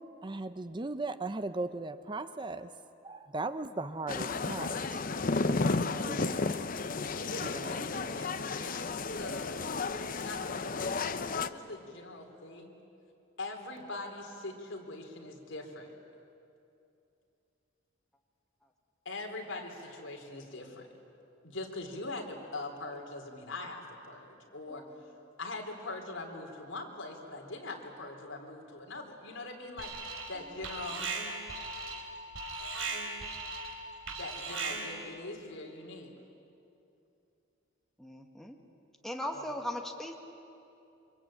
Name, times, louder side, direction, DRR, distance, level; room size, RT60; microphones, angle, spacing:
voice 1, 0.2-2.7 3.0-4.8 6.1-6.5, right 2 dB, 25° right, 11 dB, 0.6 m, -37 dB
sound 1, 4.1-11.5, left 3 dB, 45° left, 0.7 m, -33 dB
voice 2, 7.2-12.7 13.4-15.9 19.1-20.9 21.4-24.8 25.4-31.1 34.1-36.1 39.3-39.4, left 2 dB, 70° left, 2 dB, 3.6 m, -42 dB
Alarm, 29.8-30.4 30.6-35.1, right 3 dB, 80° right, 3.4 m, -38 dB
voice 3, 38.0-38.6 39.0-40.2, left 1 dB, ahead, 2 dB, 1.6 m, -39 dB
27.0 x 24.5 x 8.8 m, 2.7 s
head